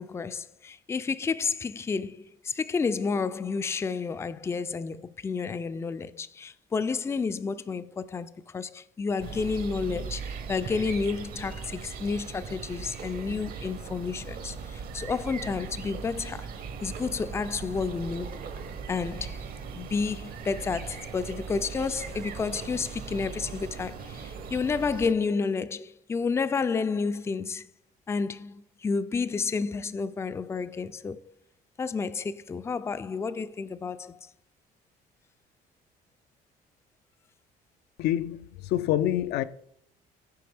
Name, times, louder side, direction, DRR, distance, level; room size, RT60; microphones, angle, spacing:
voice 1, 0.0-16.5 16.8-18.5 18.9-19.4 19.7-27.7 28.1-31.2 31.8-34.3, left 5 dB, 15° left, 0.3 m, -31 dB
sound 1, 9.2-25.1, right 6 dB, 60° right, 0.9 m, -39 dB
voice 2, 38.0-39.4, left 12 dB, 75° left, 0.5 m, -27 dB
7.7 x 5.0 x 3.4 m
cardioid pair, 110°, 17 cm